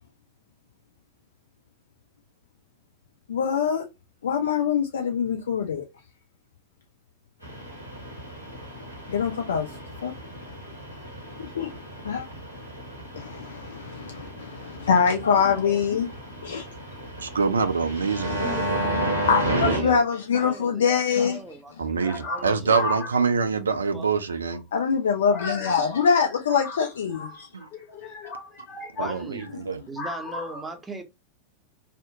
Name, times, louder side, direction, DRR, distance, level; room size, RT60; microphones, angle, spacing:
voice 1, 3.3-3.8 4.2-5.8 9.1-9.7 10.0-10.1 11.4-11.7 12.0-12.3 13.1-16.1 16.4-16.7 19.3-21.4 24.7-27.5, left 6 dB, 65° left, 0.4 m, -24 dB
sound 1, 7.4-19.8, equal, 85° left, 1.0 m, -33 dB
voice 2, 17.2-19.2 19.5-19.9 21.8-24.6 29.0-29.8, right 5 dB, 75° right, 0.3 m, -25 dB
voice 3, 18.4-18.9 19.7-20.0 20.3-20.9 21.2-22.8 23.4-24.1 29.0-29.5 29.9-31.0, right 2 dB, 10° right, 0.5 m, -38 dB
voice 4, 22.0-23.1 25.3-26.0 26.6-26.8 27.1-29.2 30.0-30.7, left 3 dB, 30° left, 1.0 m, -35 dB
2.7 x 2.0 x 2.6 m
figure-of-eight pair, 90°, 0 cm